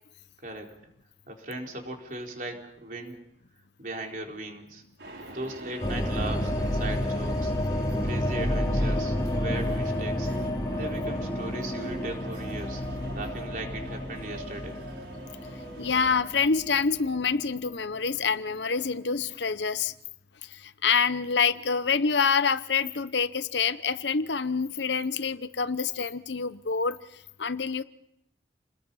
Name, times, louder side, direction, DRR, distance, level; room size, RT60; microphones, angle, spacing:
voice 1, 1.3-3.2 3.8-4.8 5.3-7.5 8.0-10.3 10.7-12.8 13.1-14.8, right 2 dB, 45° right, 4.1 m, -38 dB
sound 1, 5.0-16.1, right 1 dB, 75° right, 5.4 m, -44 dB
sound 2, 5.8-17.9, left 1 dB, 20° left, 2.6 m, -30 dB
voice 2, 15.8-19.9 20.8-27.0 27.4-27.8, left 5 dB, 75° left, 0.8 m, -26 dB
29.5 x 20.5 x 5.6 m
head